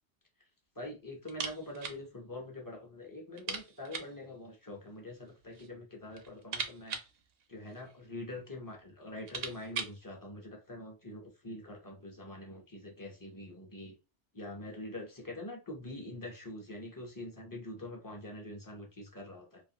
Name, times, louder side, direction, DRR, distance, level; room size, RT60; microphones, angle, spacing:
voice 1, 0.8-7.0 7.5-13.9 14.3-19.6, left 1 dB, 30° left, 0.4 m, -44 dB
sound 1, 1.3-2.0 2.3-2.4 2.7-2.8 3.3-4.2 5.1-5.7 6.1-8.0 8.7-8.8 9.1-10.0, right 6 dB, 65° right, 0.7 m, -41 dB
2.4 x 2.4 x 2.7 m
omnidirectional pair, 1.2 m